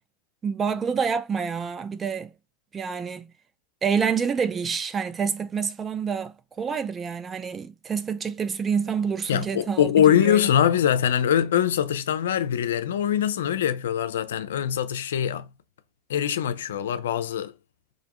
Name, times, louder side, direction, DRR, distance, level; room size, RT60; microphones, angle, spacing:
voice 1, 0.4-2.3 2.7-3.3 3.8-10.5, right 6 dB, 25° right, 0.3 m, -28 dB
voice 2, 9.3-15.5 16.1-17.5, left 9 dB, 85° left, 0.4 m, -23 dB
2.5 x 2.0 x 2.9 m
hypercardioid pair, 100°, 0 cm